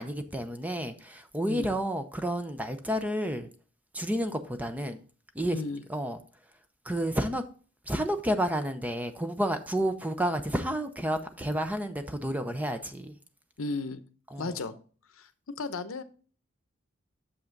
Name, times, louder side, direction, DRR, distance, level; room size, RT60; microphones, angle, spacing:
voice 1, 0.0-3.5 3.9-5.0 5.3-5.6 5.9-6.2 6.8-7.4 7.9-13.1 14.3-14.5, equal, 10° right, 0.6 m, -30 dB
voice 2, 1.5-1.8 5.5-5.8 13.6-14.0 14.4-14.8 15.1-15.3 15.6-16.0, left 3 dB, 75° left, 0.8 m, -34 dB
7.1 x 5.6 x 3.9 m
head